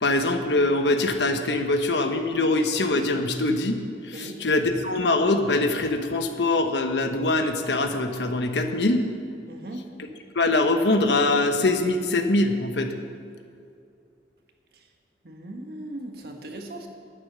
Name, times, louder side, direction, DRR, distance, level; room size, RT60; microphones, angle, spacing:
voice 1, 0.0-3.8 4.1-9.0 10.3-12.9, left 2 dB, 85° left, 6 dB, 1.1 m, -23 dB
voice 2, 9.5-9.8 15.2-16.9, right 1 dB, 60° right, 3 dB, 1.6 m, -38 dB
11.0 x 9.7 x 6.8 m, 2.5 s
head